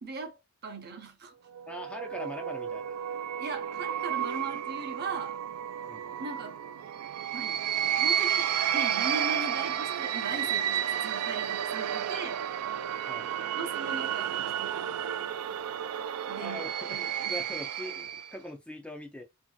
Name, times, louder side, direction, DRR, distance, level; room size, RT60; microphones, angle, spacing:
voice 1, 0.0-1.3 2.2-2.3 3.4-5.4 6.2-6.6 7.3-7.6 8.0-12.4 13.5-14.9 16.3-16.6 16.9-17.4, right 3 dB, 45° right, 0.7 m, -39 dB
sound 1, 1.5-18.3, right 9 dB, 75° right, 0.3 m, -32 dB
voice 2, 1.7-3.0 5.9-6.1 13.1-13.3 16.4-17.0 17.3-19.2, left 1 dB, 5° left, 0.4 m, -41 dB
2.9 x 2.6 x 2.3 m
head